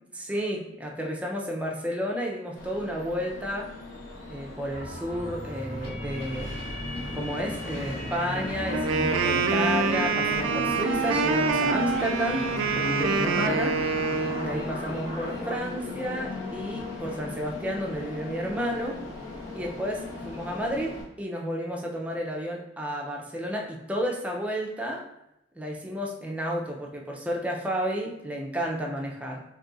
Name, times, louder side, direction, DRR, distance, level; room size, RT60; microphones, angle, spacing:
voice 1, 0.1-3.7 4.3-6.6 7.1-12.5 12.8-13.8 14.4-19.0 19.5-25.0 25.5-29.4, equal, 5° right, -1 dB, 0.4 m, -31 dB
Train, 2.6-21.0, left 2 dB, 80° left, 1.1 m, -36 dB
sound 1, 4.7-15.6, equal, 55° left, 1.4 m, -40 dB
Wind instrument woodwind instrument, 8.7-14.6, right 5 dB, 85° right, 0.3 m, -26 dB
2.7 x 2.4 x 3.8 m, 0.85 s
head